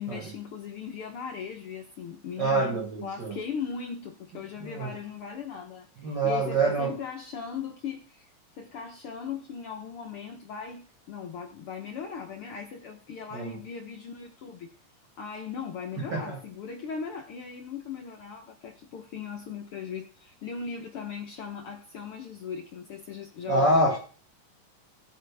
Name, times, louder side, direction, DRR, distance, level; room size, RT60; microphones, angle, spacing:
voice 1, 0.0-8.3 8.6-14.7 15.2-23.9, left 6 dB, 75° left, 1.2 m, -38 dB
voice 2, 2.4-3.4 4.6-4.9 6.0-7.0 13.3-13.6 16.1-16.4 23.5-24.0, right 2 dB, 55° right, 1.2 m, -26 dB
16.5 x 8.6 x 3.4 m
omnidirectional pair, 3.9 m